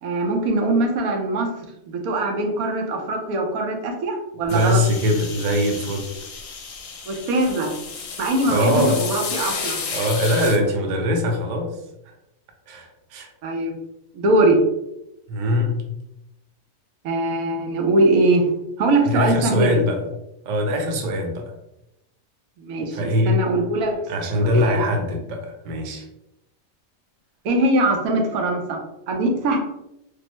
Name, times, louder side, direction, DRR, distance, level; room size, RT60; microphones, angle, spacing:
voice 1, 0.0-1.5 1.9-4.8 7.1-7.7 8.2-9.8 13.4-13.8 14.1-14.6 17.0-18.4 18.8-19.8 22.6-23.9 24.4-24.8 27.4-28.8 29.1-29.6, right 2 dB, 90° right, 2 dB, 1.1 m, -21 dB
sound 1, 4.5-10.6, left 5 dB, 70° left, 0.9 m, -32 dB
voice 2, 4.5-6.1 8.5-9.0 9.9-11.8 12.7-13.3 15.3-15.9 19.1-20.0 20.4-21.5 22.9-23.4 24.1-26.0, left 1 dB, 55° right, 2 dB, 0.5 m, -22 dB
3.3 x 2.0 x 3.0 m, 0.86 s
omnidirectional pair, 1.5 m